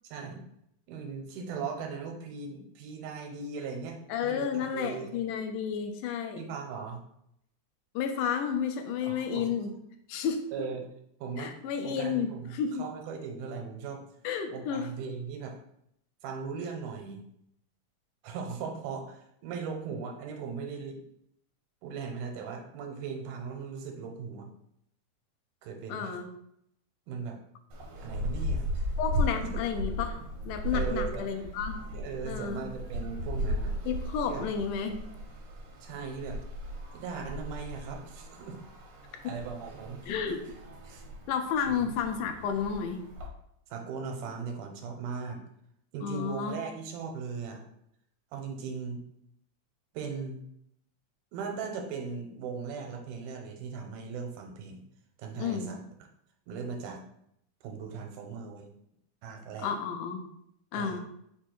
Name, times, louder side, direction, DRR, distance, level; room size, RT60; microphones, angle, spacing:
voice 1, 0.0-0.4 0.9-5.1 6.4-7.0 9.0-9.5 10.5-10.9 11.2-11.6 11.8-14.0 14.5-15.6 16.2-17.2 18.2-21.0 21.8-24.5 25.6-26.2 27.1-27.4 28.0-28.7 29.4-29.5 30.7-31.3 31.9-33.8 34.3-34.5 35.8-36.4 36.9-38.6 39.1-40.0 40.9-41.0 41.6-41.9 43.7-45.4 45.9-47.6 48.3-49.0 49.9-50.4 51.3-54.8 55.2-55.8 56.5-57.0 57.6-58.7 59.2-59.8 60.7-61.0, right 5 dB, 85° right, 3 dB, 2.1 m, -38 dB
voice 2, 4.1-6.5 8.0-9.7 10.1-10.4 11.4-12.9 14.2-14.9 25.9-26.3 29.0-30.2 30.5-31.8 32.2-32.7 33.9-35.0 40.1-40.4 41.3-43.0 46.0-46.6 55.4-55.7 59.6-60.2 60.7-61.0, left 7 dB, 80° left, 6 dB, 2.1 m, -31 dB
sound 1, 27.7-43.3, equal, 70° right, 1.3 m, -36 dB
5.1 x 2.3 x 4.4 m, 0.74 s
omnidirectional pair, 3.6 m